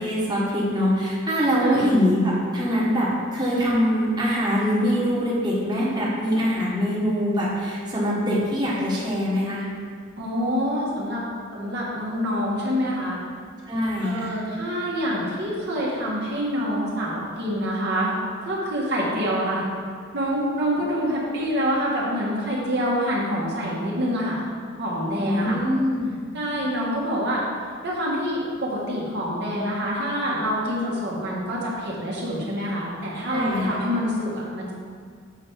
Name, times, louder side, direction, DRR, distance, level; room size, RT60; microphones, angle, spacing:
voice 1, 0.0-9.6 13.7-14.3 25.2-26.3 33.2-33.7, equal, 20° right, -7 dB, 1.5 m, -23 dB
voice 2, 1.6-1.9 10.2-11.2 11.5-13.2 14.0-18.1 18.4-19.6 20.1-24.5 24.8-25.6 26.3-27.4 27.8-34.7, equal, 55° right, -5 dB, 1.6 m, -26 dB
7.3 x 4.9 x 4.7 m, 2.1 s
head